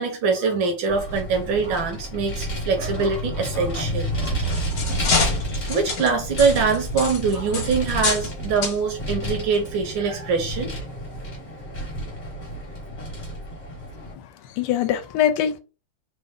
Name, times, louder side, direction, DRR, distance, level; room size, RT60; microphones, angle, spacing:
voice 1, 0.0-4.9 5.7-10.7, right 5 dB, 70° right, 1.3 m, -24 dB
Vehicle, 0.9-14.1, equal, 30° left, 0.8 m, -30 dB
sound 1, 4.1-8.3 8.6-8.8 9.5-9.7 10.2-10.3, left 4 dB, 60° left, 1.5 m, -27 dB
voice 2, 14.1-15.6, left 10 dB, 85° left, 1.5 m, -23 dB
3.9 x 2.1 x 3.5 m
omnidirectional pair, 2.4 m